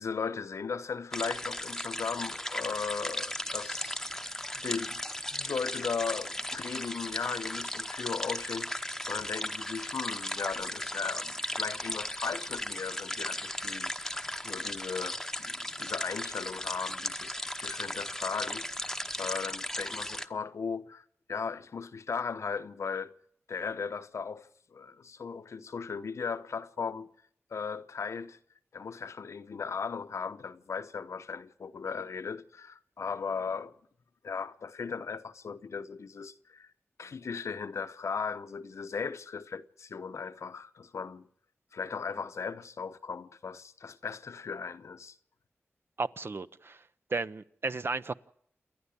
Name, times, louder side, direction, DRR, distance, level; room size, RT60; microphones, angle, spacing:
voice 1, 0.0-5.0 5.3-23.1 23.5-27.1 27.5-28.4 28.7-33.7 34.2-36.7 37.0-41.3 41.7-45.1, left 5 dB, 75° left, 0.8 m, -37 dB
sound 1, 1.1-20.3, left 1 dB, 5° left, 0.9 m, -36 dB
voice 2, 46.0-46.8 47.1-48.1, right 3 dB, 50° right, 0.7 m, -34 dB
28.5 x 11.0 x 8.5 m
cardioid pair, 60°, 5 cm